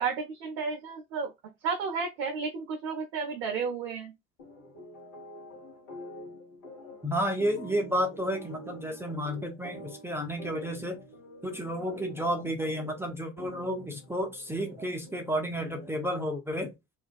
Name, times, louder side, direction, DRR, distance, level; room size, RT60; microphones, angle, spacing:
voice 1, 0.0-1.3 1.6-4.1, right 5 dB, 65° right, 0.6 m, -32 dB
sound 1, 4.4-16.2, equal, 70° left, 1.1 m, -47 dB
voice 2, 7.0-11.0 11.4-16.7, equal, 5° right, 0.5 m, -31 dB
2.4 x 2.2 x 2.4 m
figure-of-eight pair, 55°, 40 cm